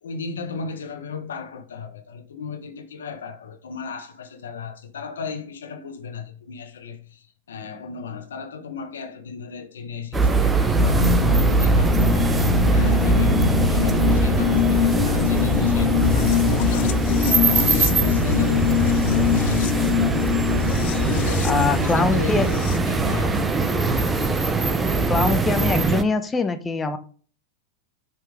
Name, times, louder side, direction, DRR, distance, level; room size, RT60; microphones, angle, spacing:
voice 1, 0.0-12.4 12.7-16.9 17.3-19.9 21.1-22.6 22.9-23.6, left 5 dB, 85° left, 1.1 m, -34 dB
sound 1, 10.1-26.0, right 4 dB, 15° right, 0.8 m, -21 dB
sound 2, 10.8-22.8, left 10 dB, 60° left, 0.5 m, -23 dB
voice 2, 21.4-22.5 25.1-27.0, left 3 dB, 15° left, 0.9 m, -23 dB
5.9 x 4.7 x 4.8 m
hypercardioid pair, 110°, 0 cm